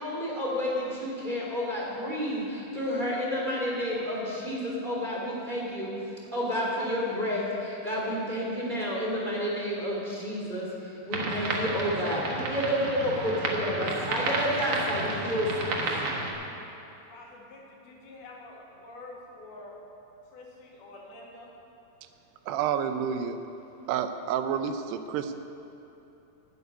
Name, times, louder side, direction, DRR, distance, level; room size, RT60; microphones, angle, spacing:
voice 1, 0.0-5.9 6.3-16.0, equal, 15° right, -5 dB, 2.4 m, -30 dB
sound 1, 11.1-16.3, right 2 dB, 55° right, 1.5 m, -31 dB
voice 2, 17.1-19.8 20.3-21.6, left 2 dB, 70° left, -3 dB, 4.1 m, -47 dB
voice 3, 22.5-23.4 23.9-25.4, right 8 dB, 85° right, 9 dB, 2.8 m, -29 dB
12.5 x 9.2 x 9.5 m, 2.9 s
omnidirectional pair, 4.6 m